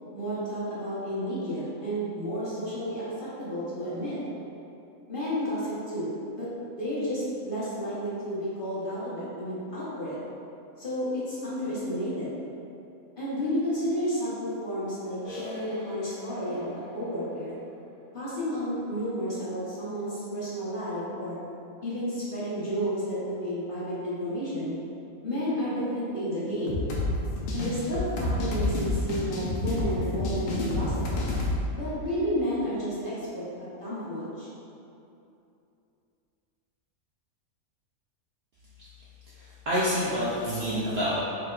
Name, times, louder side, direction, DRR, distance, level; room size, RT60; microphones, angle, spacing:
voice 1, 0.1-4.2 5.1-6.5 6.8-10.2 10.8-12.3 13.2-17.6 18.1-21.4 21.8-24.8 25.2-26.8 27.5-31.1 31.7-34.5, equal, 45° left, -10 dB, 0.9 m, -31 dB
sound 1, 15.2-20.7, left 2 dB, 85° left, 1.8 m, -48 dB
sound 2, 26.7-31.6, left 2 dB, 70° left, 1.0 m, -29 dB
voice 2, 39.4-41.2, equal, 65° right, -8 dB, 0.6 m, -27 dB
4.5 x 2.8 x 2.3 m, 2.7 s
omnidirectional pair, 1.5 m